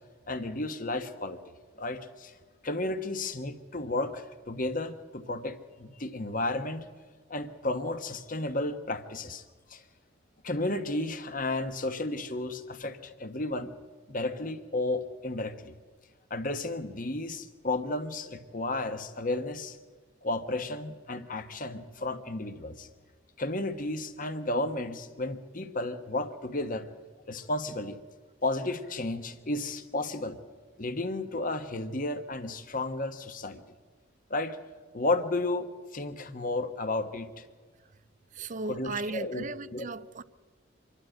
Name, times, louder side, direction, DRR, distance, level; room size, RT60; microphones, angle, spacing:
voice 1, 0.3-1.4 1.8-2.4 2.6-6.9 7.3-9.4 9.7-9.8 10.4-13.7 14.1-15.7 16.3-19.8 20.2-22.9 23.4-26.9 27.3-28.0 28.4-30.4 30.8-33.6 34.3-34.6 34.9-37.5 38.7-39.4 39.7-39.9, left 2 dB, 45° left, 1.3 m, -33 dB
voice 2, 38.3-40.2, right 3 dB, 40° right, 0.6 m, -36 dB
25.5 x 12.0 x 9.1 m
head